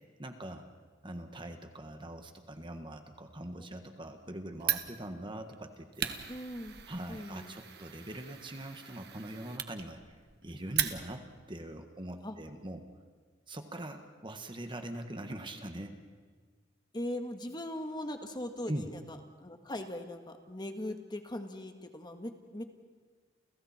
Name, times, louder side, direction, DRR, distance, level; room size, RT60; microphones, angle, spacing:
voice 1, 0.2-0.7 1.0-6.1 6.9-12.8 13.5-16.0 18.7-18.9, right 1 dB, 25° right, 6 dB, 1.6 m, -42 dB
Fire, 4.6-11.4, right 11 dB, 60° right, 1.4 m, -38 dB
voice 2, 6.3-6.8 7.1-7.6 12.2-12.4 16.9-22.6, left 1 dB, 25° left, 5 dB, 1.7 m, -40 dB
30.0 x 29.5 x 4.4 m, 1.5 s
head